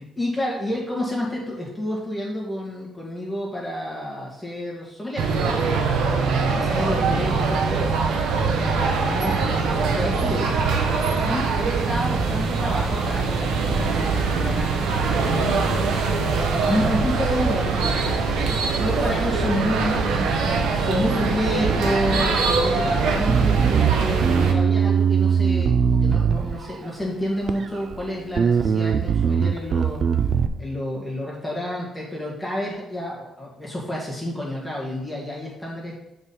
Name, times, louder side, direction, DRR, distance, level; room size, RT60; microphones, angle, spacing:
voice 1, 0.2-5.2 6.5-7.9 8.4-9.4 9.8-10.5 11.2-18.4 18.8-30.0 30.6-36.0, left 1 dB, 5° left, -5 dB, 2.1 m, -29 dB
sound 1, 5.2-24.5, right 4 dB, 85° right, 1.1 m, -22 dB
Bass guitar, 23.3-26.9 27.5-28.0 28.4-30.5, right 7 dB, 50° right, 0.5 m, -20 dB
7.0 x 4.3 x 5.6 m, 0.88 s
cardioid pair, 110°, 0 cm